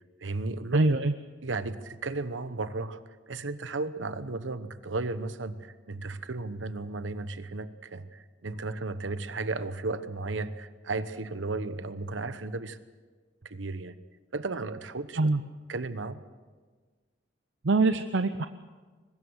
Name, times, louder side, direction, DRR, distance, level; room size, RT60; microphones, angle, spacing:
voice 1, 0.2-0.9 1.4-12.8 13.4-14.0 14.3-15.2 15.7-16.2, right 3 dB, 90° right, 12 dB, 1.1 m, -34 dB
voice 2, 0.7-1.1 15.1-15.4 17.6-18.5, right 3 dB, 75° right, 10 dB, 0.7 m, -24 dB
22.5 x 20.0 x 6.5 m, 1.4 s
head